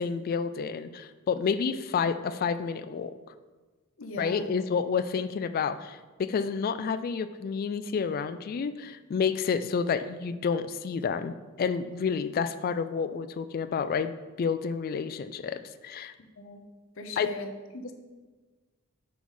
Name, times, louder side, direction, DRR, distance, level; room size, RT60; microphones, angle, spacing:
voice 1, 0.0-3.2 4.2-16.1 17.2-17.3, left 6 dB, 45° left, 11 dB, 0.3 m, -30 dB
voice 2, 4.0-4.5 16.4-16.6 17.0-17.9, left 2 dB, 65° left, 6 dB, 0.8 m, -39 dB
6.1 x 4.7 x 5.4 m, 1.3 s
head